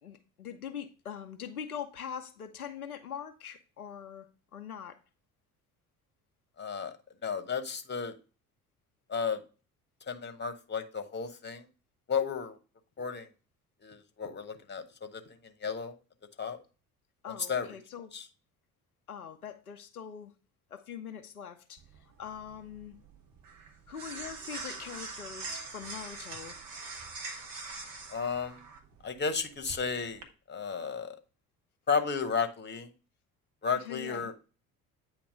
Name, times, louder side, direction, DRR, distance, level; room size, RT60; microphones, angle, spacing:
voice 1, 0.0-5.0 17.2-18.1 19.1-20.3 20.7-23.0 23.9-26.5 33.8-34.3, left 8 dB, 90° left, 0.6 m, -43 dB
voice 2, 6.6-6.9 7.2-8.1 9.1-9.4 10.1-11.6 12.1-12.6 13.0-13.3 13.8-15.9 16.4-16.6 17.3-17.8 18.1-18.2 28.1-28.6 29.0-31.2 31.9-32.9 33.6-34.4, left 6 dB, 25° left, 1.1 m, -33 dB
sound 1, 21.8-30.2, right 3 dB, 50° right, 1.4 m, -44 dB
8.6 x 2.9 x 5.3 m
figure-of-eight pair, 55°, 43 cm